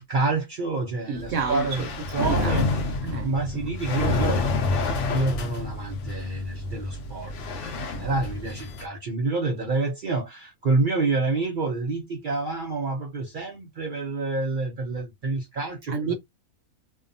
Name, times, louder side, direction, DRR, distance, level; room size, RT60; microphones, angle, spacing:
voice 1, 0.0-2.7 3.1-4.4 5.1-16.1, right 3 dB, 85° right, 0.4 m, -28 dB
voice 2, 1.1-1.9 2.2-4.2 15.9-16.1, right 5 dB, 65° right, 0.8 m, -31 dB
sound 1, 1.2-8.9, left 3 dB, 65° left, 0.8 m, -29 dB
2.6 x 2.1 x 2.4 m
omnidirectional pair, 1.6 m